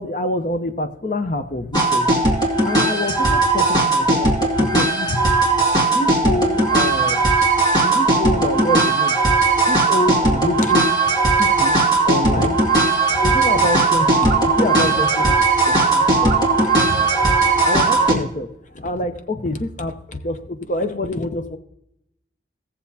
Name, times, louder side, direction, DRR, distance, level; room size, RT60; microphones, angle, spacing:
voice 1, 0.0-2.1 2.6-5.4 5.9-7.3 7.8-9.2 9.7-10.9 11.4-11.8 12.1-12.6 12.9-15.4 15.7-17.1 17.6-18.5 18.7-21.6, left 1 dB, 40° left, 8 dB, 0.8 m, -26 dB
sound 1, 1.7-18.1, right 3 dB, 25° left, 2.1 m, -17 dB
17.0 x 7.0 x 2.8 m, 0.79 s
head